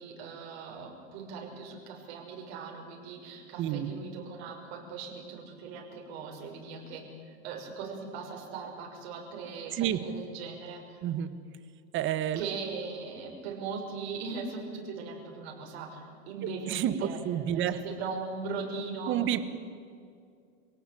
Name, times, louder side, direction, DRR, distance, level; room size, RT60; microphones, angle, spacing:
voice 1, 0.0-11.0 12.3-17.2 17.5-19.2, right 4 dB, 70° right, 0 dB, 6.3 m, -39 dB
voice 2, 3.6-3.9 9.8-10.0 11.0-11.3 11.9-12.4 16.7-17.8 19.1-19.4, right 11 dB, 35° right, 12 dB, 1.4 m, -29 dB
26.5 x 17.5 x 8.6 m, 2.3 s
supercardioid pair, 145°, 32 cm